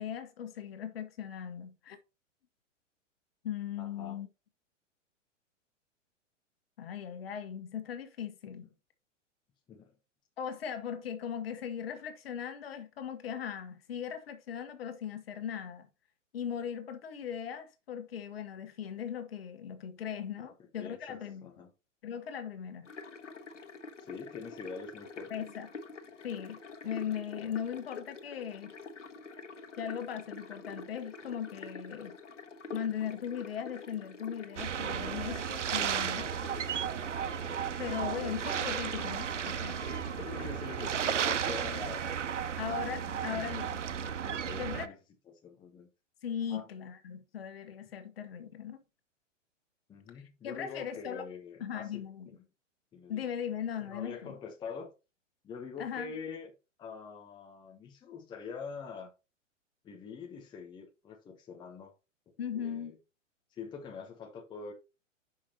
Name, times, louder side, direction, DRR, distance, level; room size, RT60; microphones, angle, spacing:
voice 1, 0.0-2.0 3.4-4.3 6.8-8.7 10.4-15.9 16.3-21.5 22.0-22.9 25.3-25.7 26.2-26.6 26.8-28.7 29.8-32.2 32.7-36.3 37.8-40.1 42.6-43.8 44.6-44.9 46.2-48.8 50.1-51.2 51.6-52.3 53.1-54.3 55.8-56.1 62.4-63.0, left 8 dB, 50° left, 1.5 m, -38 dB
voice 2, 3.8-4.2 9.7-9.9 20.4-21.7 24.0-25.5 37.7-38.4 40.2-42.1 42.6-43.5 43.9-45.0 45.3-45.9 46.5-46.7 49.9-52.3 52.9-53.3 53.8-54.9 55.4-56.5 56.8-59.1 59.8-61.9 62.5-63.0 63.5-64.7, left 5 dB, 10° left, 0.9 m, -45 dB
sound 1, 22.8-41.4, left 4 dB, 70° left, 1.4 m, -47 dB
sound 2, 34.6-44.9, right 8 dB, 70° right, 0.7 m, -34 dB
11.0 x 5.6 x 2.9 m
figure-of-eight pair, 110°, 37 cm